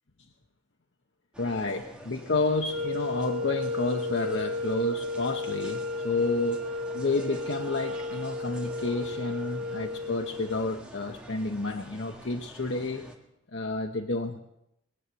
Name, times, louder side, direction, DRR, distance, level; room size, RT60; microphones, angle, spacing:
sound 1, 1.3-13.2, right 1 dB, 5° right, 1.8 m, -47 dB
voice 1, 1.4-13.0 13.5-14.4, left 2 dB, 60° left, 4 dB, 0.9 m, -30 dB
sound 2, 2.6-10.8, left 2 dB, 75° right, 1.6 m, -34 dB
21.0 x 8.4 x 7.9 m, 0.84 s
head